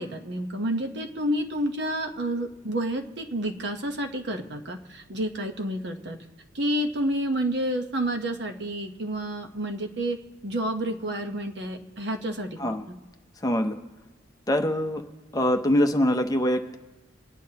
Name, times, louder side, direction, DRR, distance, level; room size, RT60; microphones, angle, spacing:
voice 1, 0.0-6.2 6.5-10.2 10.4-12.7, right 1 dB, 55° right, 5 dB, 1.0 m, -29 dB
voice 2, 13.4-13.8 14.5-15.0 15.3-16.8, left 1 dB, 20° left, 5 dB, 0.6 m, -23 dB
26.5 x 9.7 x 2.9 m, 1.2 s
head